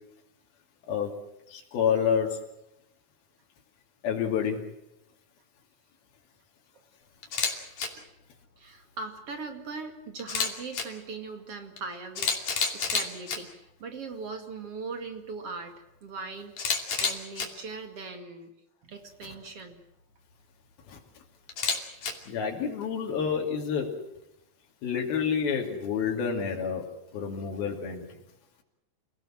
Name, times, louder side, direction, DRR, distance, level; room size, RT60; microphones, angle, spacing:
voice 1, 1.5-2.4 4.0-4.6 20.9-21.0 22.3-23.9 24.8-26.8 27.1-28.1, left 7 dB, 85° left, 0 dB, 4.5 m, -28 dB
Camera, 7.2-7.5 7.8-7.9 10.2-10.8 11.8-11.9 12.2-13.4 16.6-17.5 21.5-22.1, left 5 dB, 50° left, 3.9 m, -28 dB
voice 2, 7.4-8.0 8.6-15.7 16.0-18.5 18.8-19.8, right 4 dB, 45° right, 6 dB, 2.8 m, -40 dB
29.0 x 17.0 x 7.5 m, 0.89 s
omnidirectional pair, 4.2 m